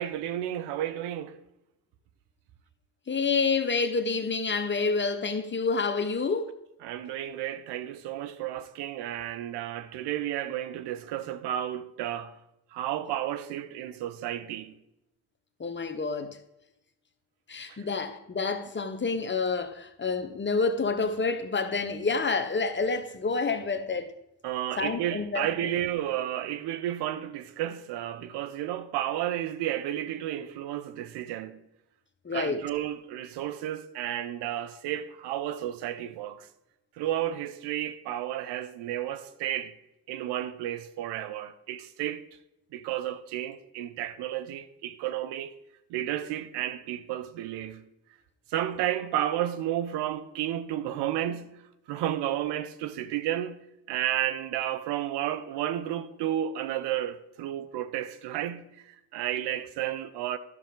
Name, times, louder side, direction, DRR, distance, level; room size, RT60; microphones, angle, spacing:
voice 1, 0.0-1.4 6.8-12.4 12.7-14.8 17.7-17.8 24.4-31.6 32.3-36.5 37.0-39.7 40.1-42.2 42.7-45.6 45.9-47.8 48.5-51.5 51.9-53.6 53.9-60.4, right 12 dB, 75° right, 0.7 m, -32 dB
voice 2, 3.1-6.5 15.6-16.4 17.5-24.1 24.8-25.5 32.2-32.6, left 4 dB, 25° left, 1.0 m, -28 dB
11.0 x 6.7 x 3.7 m
supercardioid pair, 60°, 41 cm